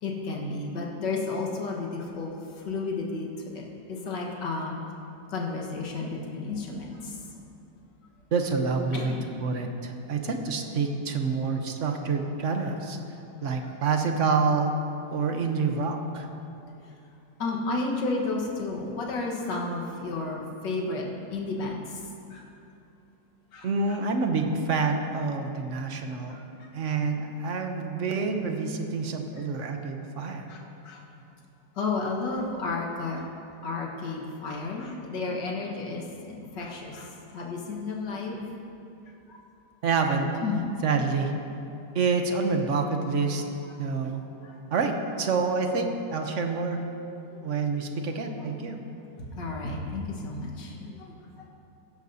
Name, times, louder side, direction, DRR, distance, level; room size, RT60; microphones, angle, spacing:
voice 1, 0.0-3.3 3.5-3.6 3.9-4.8 5.3-7.2 8.9-9.3 17.4-22.0 22.3-22.4 23.5-24.0 24.5-24.6 26.3-26.7 30.5-31.0 31.8-33.3 33.6-38.4 39.3-39.4 40.4-40.6 44.4-44.6 47.3-47.4 49.2-51.5, left 3 dB, 85° left, -1 dB, 2.0 m, -32 dB
voice 2, 8.3-13.0 13.4-14.7 15.1-16.3 23.6-26.4 26.7-30.5 39.8-40.3 40.8-41.3 41.9-43.4 43.8-44.2 44.7-46.8 47.4-48.8, right 4 dB, 55° right, 4 dB, 1.0 m, -27 dB
16.0 x 12.5 x 2.7 m, 2.7 s
omnidirectional pair, 1.9 m